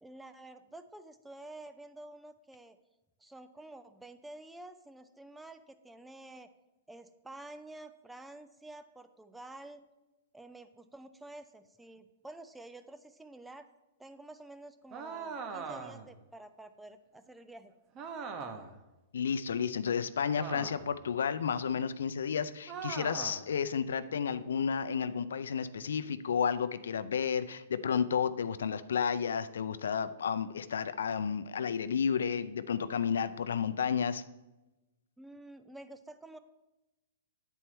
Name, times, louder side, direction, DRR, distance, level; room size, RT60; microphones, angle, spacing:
voice 1, 0.0-2.8 3.2-6.5 6.9-9.9 10.3-13.7 14.0-17.7 35.2-36.4, right 2 dB, 5° right, 10 dB, 0.5 m, -50 dB
sound 1, 14.9-16.1 17.9-18.8 20.3-21.0 22.7-23.5, right 5 dB, 30° right, 0.9 m, -41 dB
voice 2, 19.1-34.2, left 7 dB, 85° left, 12 dB, 0.4 m, -32 dB
9.8 x 4.5 x 4.3 m, 1.0 s
hypercardioid pair, 135°, 0 cm